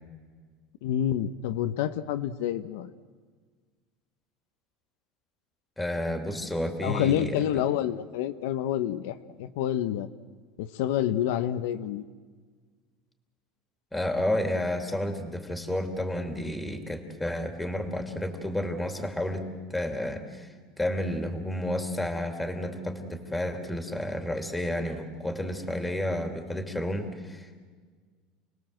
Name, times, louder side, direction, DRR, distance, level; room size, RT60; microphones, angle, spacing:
voice 1, 0.8-2.9 6.8-10.1 10.6-12.0, left 11 dB, 80° left, 9 dB, 1.0 m, -28 dB
voice 2, 5.8-7.5 13.9-19.4 19.7-20.5 20.8-27.7, left 1 dB, 5° left, 5 dB, 2.9 m, -31 dB
29.0 x 20.5 x 7.8 m, 1.5 s
supercardioid pair, 140°, 0 cm